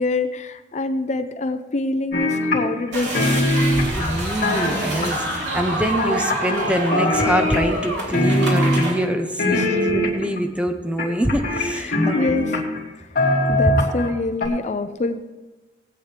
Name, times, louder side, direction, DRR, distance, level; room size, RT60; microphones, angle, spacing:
voice 1, 0.0-3.5 9.5-9.9 11.7-12.6 12.9-13.1 13.5-15.2, left 2 dB, 40° left, 9 dB, 0.5 m, -26 dB
sound 1, 2.1-2.9 3.1-5.4 6.0-6.7 6.9-7.9 8.1-9.0 9.4-10.4 11.0-12.8 13.2-14.1 14.4-14.5, left 1 dB, 55° left, 2.3 m, -21 dB
sound 2, 2.9-8.9, right 1 dB, 85° right, 3.1 m, -27 dB
voice 2, 4.0-12.6, equal, 5° right, 6 dB, 0.8 m, -25 dB
18.5 x 8.8 x 3.3 m, 1.2 s
head